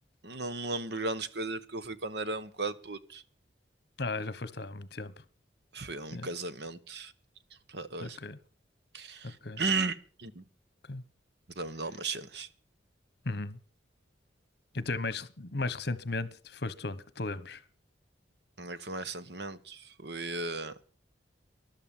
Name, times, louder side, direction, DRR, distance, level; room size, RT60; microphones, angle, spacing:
voice 1, 0.2-3.2 5.7-7.1 7.7-8.2 8.9-10.4 11.6-12.5 18.6-20.7, right 3 dB, 60° right, 1.1 m, -35 dB
voice 2, 4.0-5.1 6.1-6.3 8.0-8.4 9.4-9.6 10.9-11.0 13.2-13.6 14.7-17.6, left 3 dB, 60° left, 1.2 m, -35 dB
13.5 x 12.0 x 7.2 m
head